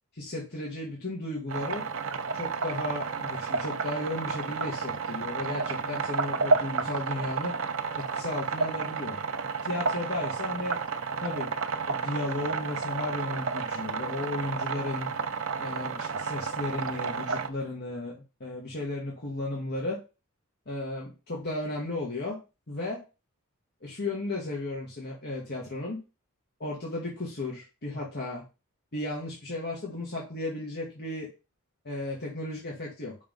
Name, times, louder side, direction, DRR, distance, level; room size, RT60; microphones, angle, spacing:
voice 1, 0.1-1.9 2.3-7.6 7.9-9.2 9.6-10.8 11.2-11.5 11.9-15.1 15.6-20.0 20.6-22.4 22.7-23.0 23.8-26.0 26.6-28.4 28.9-31.3 31.8-33.2, left 2 dB, 50° left, -3 dB, 1.7 m, -34 dB
sound 1, 1.5-17.5, right 4 dB, 65° right, 0.7 m, -31 dB
5.5 x 3.6 x 5.3 m, 0.29 s
head